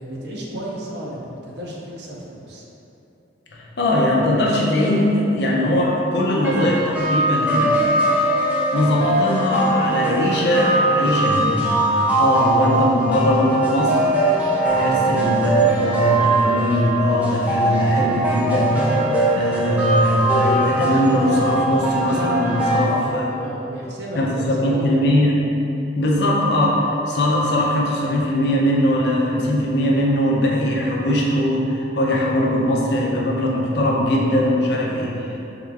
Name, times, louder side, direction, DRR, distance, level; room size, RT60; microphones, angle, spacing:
voice 1, 0.0-2.6 22.7-25.1, right 1 dB, 60° right, -3 dB, 0.5 m, -33 dB
voice 2, 3.5-7.8 8.7-14.0 14.7-18.8 19.3-23.3 24.2-25.4 25.9-35.4, left 1 dB, 65° left, -3 dB, 0.6 m, -20 dB
sound 1, 6.4-22.9, right 2 dB, 10° right, 0.4 m, -21 dB
3.6 x 3.6 x 3.3 m, 2.9 s
head